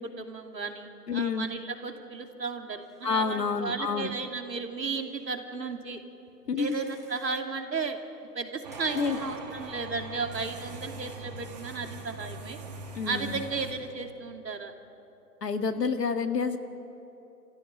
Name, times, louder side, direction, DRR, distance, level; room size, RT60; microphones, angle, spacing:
voice 1, 0.0-6.0 6.6-8.0 8.3-12.6 13.0-14.7, right 4 dB, 90° right, 5 dB, 2.6 m, -34 dB
voice 2, 1.1-1.5 3.0-4.1 6.5-6.8 9.0-9.2 12.9-13.4 15.4-16.6, left 5 dB, 75° left, 7 dB, 1.9 m, -28 dB
sound 1, 2.8-3.5 4.0-4.2 4.6-5.3 6.6-7.3 8.7-9.4, right 1 dB, 10° right, 0.9 m, -55 dB
sound 2, 8.6-13.7, right 3 dB, 25° right, 2.0 m, -41 dB
26.0 x 15.5 x 9.1 m, 2.9 s
hypercardioid pair, 170°, 49 cm